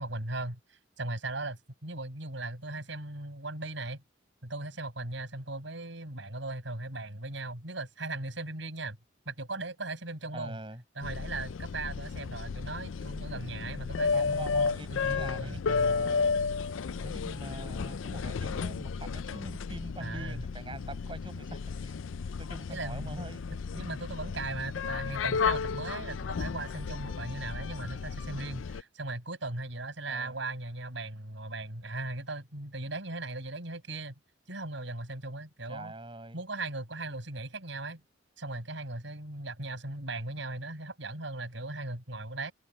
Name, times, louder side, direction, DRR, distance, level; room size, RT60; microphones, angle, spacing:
voice 1, 0.0-4.0 4.4-9.0 9.3-10.6 11.0-16.0 20.0-20.4 22.7-23.3 23.7-34.1 34.5-35.9 36.3-38.0 38.4-42.5, right 2 dB, 70° right, 5.9 m, -38 dB
voice 2, 10.3-10.8 14.1-16.3 17.0-22.0 22.4-23.4 30.1-30.4 35.7-36.4, right 1 dB, 25° right, 6.4 m, -43 dB
sound 1, 11.0-28.8, left 5 dB, 80° left, 0.5 m, -33 dB
head